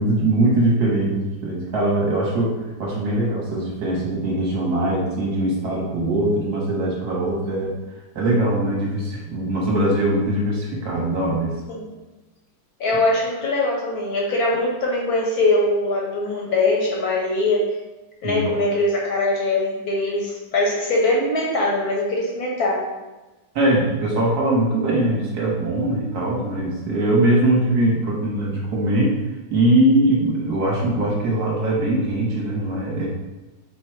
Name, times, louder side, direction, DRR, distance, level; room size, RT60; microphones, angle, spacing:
voice 1, 0.0-7.7 8.1-11.5 18.2-18.5 23.5-29.2 29.5-33.1, right 1 dB, 55° right, -3 dB, 1.4 m, -21 dB
voice 2, 7.3-7.6 11.7-11.9 12.8-17.7 18.2-22.8, left 2 dB, 65° left, -3 dB, 1.0 m, -22 dB
4.8 x 2.3 x 4.4 m, 1.1 s
omnidirectional pair, 2.4 m